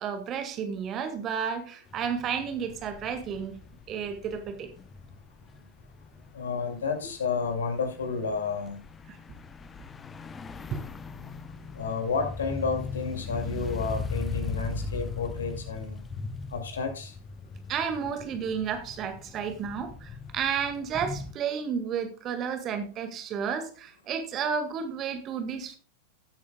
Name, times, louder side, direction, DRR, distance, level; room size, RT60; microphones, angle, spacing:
voice 1, 0.0-3.6 3.9-4.7 9.1-9.2 10.7-10.8 11.2-11.3 17.7-25.8, right 7 dB, 30° right, 1.8 m, -32 dB
sound 1, 1.9-21.3, left 4 dB, 20° left, 0.7 m, -39 dB
voice 2, 6.3-8.8 11.7-16.0 16.5-17.1, left 5 dB, 65° left, 2.4 m, -31 dB
16.5 x 8.4 x 2.2 m
figure-of-eight pair, 90°, 0 cm